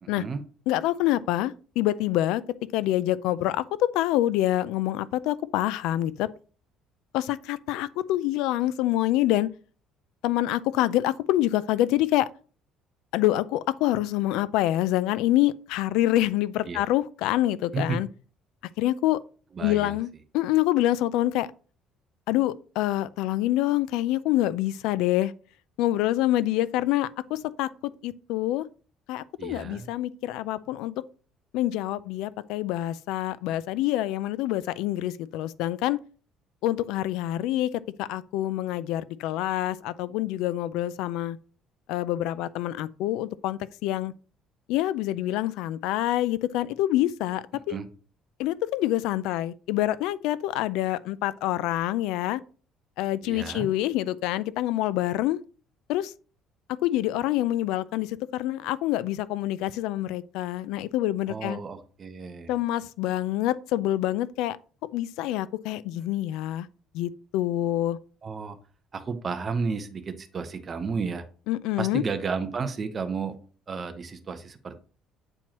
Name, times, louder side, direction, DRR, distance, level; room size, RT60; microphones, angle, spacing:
voice 1, 0.0-0.4 16.6-16.9 17.7-18.0 19.5-20.0 29.4-29.9 47.7-47.9 53.2-53.7 61.3-62.6 68.2-68.6 68.9-71.2 71.8-73.3 73.7-74.8, right 5 dB, 30° right, 0.8 m, -32 dB
voice 2, 0.7-2.4 2.7-6.3 7.1-9.5 10.2-12.3 13.1-18.1 18.8-19.2 19.6-20.1 20.3-21.5 22.3-25.3 25.8-28.6 29.1-31.0 31.5-36.0 36.6-37.7 38.0-41.4 41.9-44.1 44.7-47.7 48.4-52.4 53.0-55.4 55.9-56.1 56.8-61.6 62.5-64.6 64.9-66.7 66.9-68.0 71.5-72.0, left 14 dB, 90° left, 0.4 m, -26 dB
8.7 x 4.5 x 2.9 m
cardioid pair, 150°, 0 cm